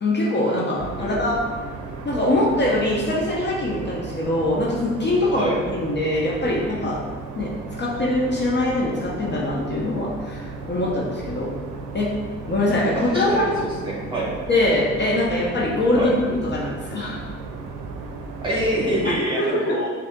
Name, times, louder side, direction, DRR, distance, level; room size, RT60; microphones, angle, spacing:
voice 1, 0.0-1.4 2.0-7.0 7.4-7.5 7.8-11.5 11.9-12.1 12.5-13.5 14.5-17.2 19.4-19.8, left 1 dB, 35° left, -5 dB, 0.7 m, -23 dB
sound 1, 0.8-19.2, right 4 dB, 85° right, 0.5 m, -35 dB
voice 2, 1.0-1.3 5.3-5.6 13.1-13.5 13.8-14.3 15.9-16.1 18.4-19.9, right 1 dB, 15° right, -6 dB, 1.2 m, -25 dB
5.2 x 2.7 x 2.2 m, 1.5 s
cardioid pair, 90°, 30 cm